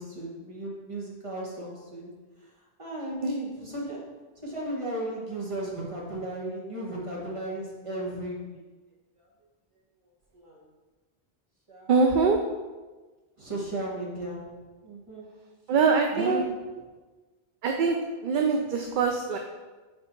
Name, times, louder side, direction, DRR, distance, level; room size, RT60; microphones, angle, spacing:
voice 1, 0.0-2.1 2.4-2.5 2.8-4.1 4.4-8.6 9.2-9.3 10.3-10.7 11.7-11.9 13.4-14.5 14.8-15.3 16.1-16.5, right 1 dB, 30° right, -4 dB, 1.4 m, -35 dB
voice 2, 11.9-12.4 15.7-16.4 17.6-18.0 18.2-19.4, right 5 dB, 60° right, 3 dB, 0.6 m, -23 dB
4.7 x 4.6 x 4.4 m, 1.3 s
omnidirectional pair, 1.1 m